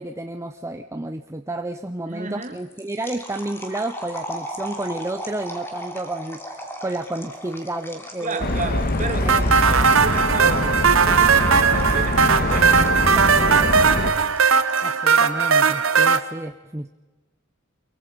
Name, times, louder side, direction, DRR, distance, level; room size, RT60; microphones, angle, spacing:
voice 1, 0.0-8.6 9.1-9.5 14.8-16.9, right 2 dB, 15° right, 7 dB, 0.6 m, -31 dB
voice 2, 2.1-2.6 8.2-14.4, right 3 dB, 35° right, 6 dB, 2.2 m, -33 dB
sound 1, 2.4-15.0, equal, 10° left, 2.7 m, -38 dB
sound 2, 8.4-14.1, left 1 dB, 45° left, 1.5 m, -23 dB
sound 3, 9.3-16.2, right 6 dB, 70° right, 1.0 m, -18 dB
24.0 x 22.5 x 5.1 m, 1.2 s
head